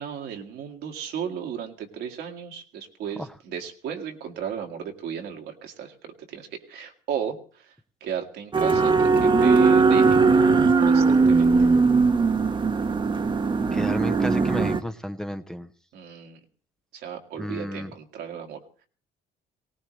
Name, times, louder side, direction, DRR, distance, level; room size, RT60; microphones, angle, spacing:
voice 1, 0.0-7.7 8.0-10.5 10.8-11.7 15.9-16.4 16.9-18.6, right 8 dB, 75° right, 4 dB, 2.0 m, -35 dB
sound 1, 8.5-14.8, right 4 dB, 30° right, 1.0 m, -19 dB
voice 2, 13.7-15.7 17.4-17.9, equal, 5° left, 7 dB, 0.7 m, -32 dB
20.0 x 18.0 x 3.2 m, 0.42 s
cardioid pair, 110°, 17 cm